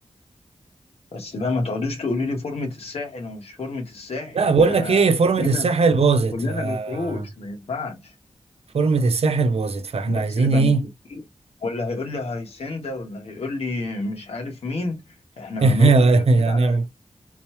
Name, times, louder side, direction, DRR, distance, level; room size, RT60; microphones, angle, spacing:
voice 1, 1.1-5.0 5.4-5.7 6.3-8.1 10.1-10.7 11.1-11.2 11.6-16.9, left 3 dB, 85° left, 1.5 m, -30 dB
voice 2, 4.3-7.2 8.7-10.8 15.6-16.9, right 3 dB, 80° right, 0.8 m, -19 dB
3.8 x 3.1 x 2.2 m
wide cardioid pair, 80°, 10 cm